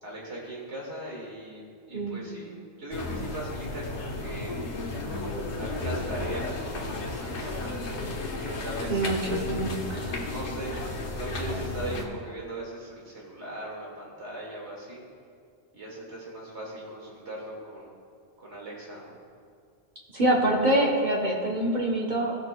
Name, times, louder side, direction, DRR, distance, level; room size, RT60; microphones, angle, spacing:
voice 1, 0.0-4.6 5.6-7.6 8.3-9.0 10.3-10.8 11.1-15.0 15.7-17.9 18.4-19.2, right 1 dB, 85° right, -4 dB, 2.3 m, -39 dB
sound 1, 2.9-12.1, left 2 dB, 85° left, 1.3 m, -33 dB
voice 2, 8.9-10.2 20.1-22.3, right 1 dB, 45° right, -2 dB, 1.1 m, -25 dB
17.5 x 6.0 x 2.2 m, 2.3 s
omnidirectional pair, 1.1 m